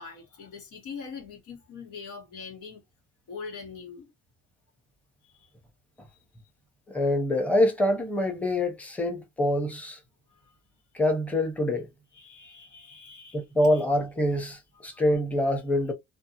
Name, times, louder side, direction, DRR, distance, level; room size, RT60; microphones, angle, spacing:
voice 1, 0.0-2.8 3.3-4.1 5.2-5.5 10.3-10.5 12.1-13.4 13.7-13.8 14.9-15.0, left 5 dB, 85° left, 1.2 m, -43 dB
voice 2, 6.9-10.0 10.9-11.9 13.3-15.9, left 1 dB, 5° left, 0.8 m, -25 dB
2.7 x 2.1 x 2.7 m
cardioid pair, 90°, 30 cm